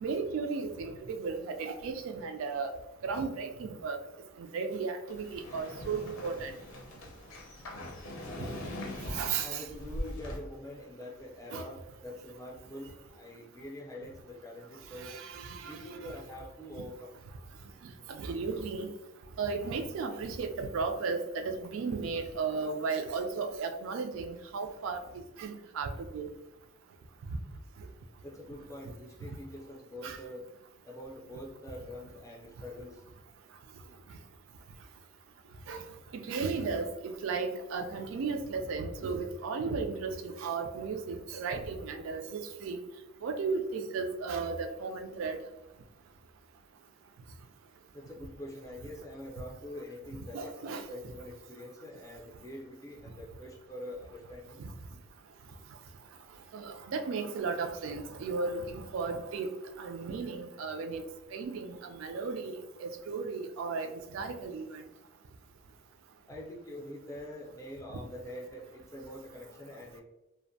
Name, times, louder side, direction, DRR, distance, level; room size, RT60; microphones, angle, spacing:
voice 1, 0.0-2.7 3.0-4.0 4.4-6.5 9.1-9.6 11.5-11.6 15.0-16.1 18.1-18.9 19.4-25.0 25.4-26.3 27.3-27.4 30.0-30.2 35.7-35.8 36.1-42.8 43.2-45.4 50.3-50.9 56.5-59.5 59.8-61.0 61.3-64.8, right 4 dB, 80° right, 6 dB, 0.3 m, -35 dB
sound 1, 5.1-10.4, left 1 dB, 90° left, 0.6 m, -41 dB
voice 2, 9.4-15.2 15.7-17.2 28.2-30.5 30.8-33.0 47.9-54.7 66.3-70.0, left 1 dB, 15° left, -2 dB, 0.4 m, -45 dB
2.5 x 2.1 x 2.6 m, 0.95 s
head